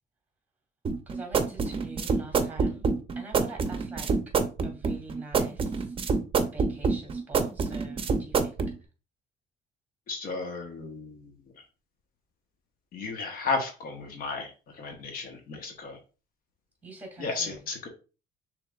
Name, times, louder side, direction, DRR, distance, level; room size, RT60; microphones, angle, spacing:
sound 1, 0.8-8.7, right 4 dB, 30° right, 0.6 m, -26 dB
voice 1, 1.1-4.1 4.6-6.0 6.5-8.6 16.8-17.7, right 2 dB, 10° right, 2.3 m, -45 dB
voice 2, 10.1-11.3 12.9-16.0 17.2-17.9, left 4 dB, 60° left, 1.2 m, -34 dB
6.3 x 3.4 x 2.4 m
cardioid pair, 110°, 17 cm